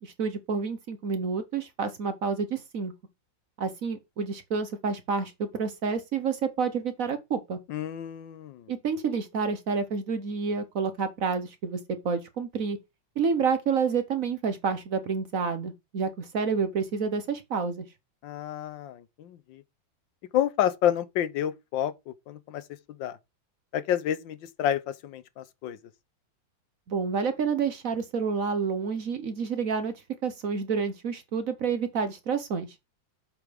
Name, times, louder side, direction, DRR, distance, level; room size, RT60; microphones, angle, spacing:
voice 1, 0.0-2.9 3.6-7.6 8.7-11.8 12.0-12.8 13.2-17.8 26.9-29.9 30.2-32.7, right 5 dB, 50° right, 1.3 m, -29 dB
voice 2, 7.7-8.7 18.2-19.6 20.3-22.6 23.0-23.2 23.7-25.8, left 10 dB, 80° left, 1.5 m, -29 dB
7.9 x 5.3 x 5.1 m
omnidirectional pair, 2.1 m